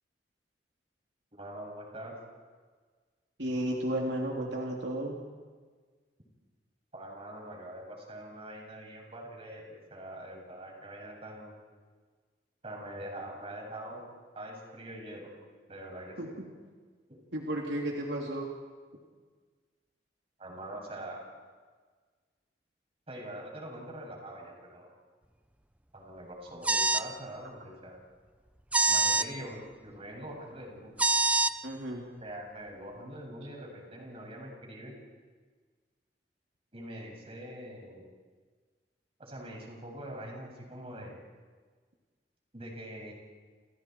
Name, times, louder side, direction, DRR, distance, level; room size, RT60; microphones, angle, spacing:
voice 1, 1.3-2.1 6.9-11.6 12.6-14.1 14.3-15.3 15.7-16.3 17.1-17.2 20.4-21.2 23.1-25.0 25.9-28.0 28.9-30.9 32.2-35.0 36.7-38.1 39.2-41.1 42.5-43.1, right 1 dB, 35° right, 0 dB, 7.3 m, -43 dB
voice 2, 3.4-5.2 16.2-16.3 17.3-18.5 31.6-32.1, right 1 dB, 80° right, -1 dB, 3.3 m, -33 dB
sound 1, 26.6-27.1 28.7-29.3 31.0-31.5, right 2 dB, 10° right, 0.6 m, -25 dB
30.0 x 29.5 x 4.7 m, 1.5 s
head